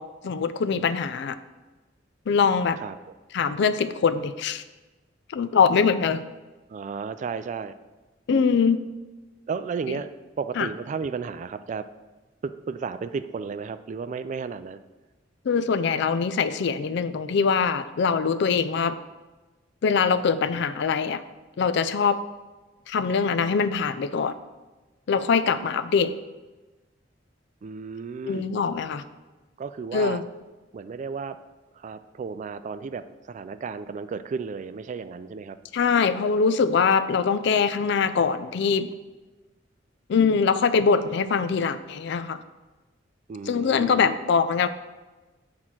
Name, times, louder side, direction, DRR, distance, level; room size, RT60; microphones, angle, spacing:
voice 1, 0.0-1.4 2.3-2.8 3.3-4.6 5.3-6.2 8.3-8.8 9.9-10.0 10.6-10.7 15.5-19.0 19.8-21.2 21.6-22.2 22.9-24.3 25.1-26.1 28.2-29.0 29.9-30.2 35.7-38.9 40.1-42.4 43.5-44.7, left 5 dB, 65° left, 13 dB, 0.4 m, -23 dB
voice 2, 6.7-7.7 9.5-10.1 10.4-11.9 12.4-14.8 27.6-28.5 29.6-30.2 30.7-31.4 31.7-35.6 43.3-44.2, right 5 dB, 40° right, 12 dB, 0.3 m, -33 dB
6.3 x 3.8 x 5.9 m, 1.2 s
head